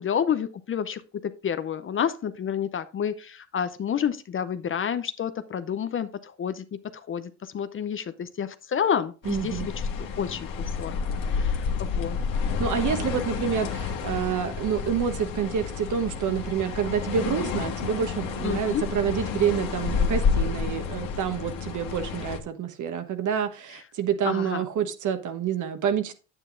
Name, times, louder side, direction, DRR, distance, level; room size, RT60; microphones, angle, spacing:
voice 1, 0.0-9.9 10.2-12.2 18.4-18.8 24.2-24.7, left 8 dB, 35° left, 12 dB, 0.6 m, -30 dB
sound 1, 9.2-22.4, left 5 dB, 60° left, 1.6 m, -30 dB
voice 2, 9.2-9.7 12.4-26.1, right 8 dB, 50° right, 9 dB, 1.3 m, -28 dB
8.9 x 8.1 x 2.6 m, 0.33 s
supercardioid pair, 90°, 38 cm